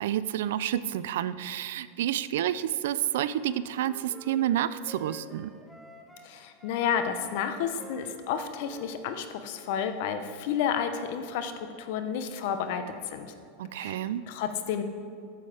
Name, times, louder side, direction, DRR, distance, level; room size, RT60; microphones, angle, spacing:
voice 1, 0.0-5.5 13.6-14.2, right 11 dB, 75° right, 16 dB, 0.4 m, -29 dB
Wind instrument woodwind instrument, 3.4-6.3 6.6-9.9, equal, ahead, 0.7 m, -50 dB
voice 2, 6.2-11.5 11.8-12.8 13.1-13.3 13.7-14.0 14.3-14.8, left 8 dB, 65° left, 9 dB, 0.8 m, -31 dB
9.7 x 7.2 x 4.9 m, 2.4 s
supercardioid pair, 120°, 0 cm